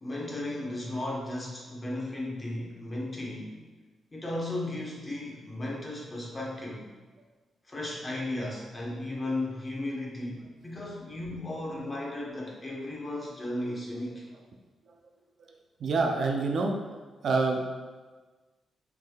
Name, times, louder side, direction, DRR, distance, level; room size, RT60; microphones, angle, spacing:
voice 1, 0.0-3.6 4.1-6.9 7.6-14.3, left 1 dB, 20° left, -3 dB, 1.0 m, -35 dB
voice 2, 15.8-16.7 17.2-17.8, right 3 dB, 50° right, 1 dB, 0.5 m, -26 dB
6.3 x 3.6 x 2.3 m, 1.3 s
wide cardioid pair, 150°, 0 cm